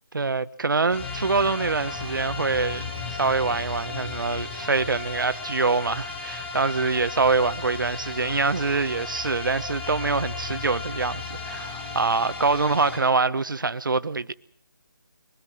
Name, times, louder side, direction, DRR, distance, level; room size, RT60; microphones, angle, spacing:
voice 1, 0.1-2.8 3.1-14.3, right 4 dB, 70° right, 1.1 m, -25 dB
sound 1, 0.9-13.0, left 4 dB, 10° left, 7.3 m, -35 dB
23.0 x 20.0 x 6.2 m
figure-of-eight pair, 160°, 11 cm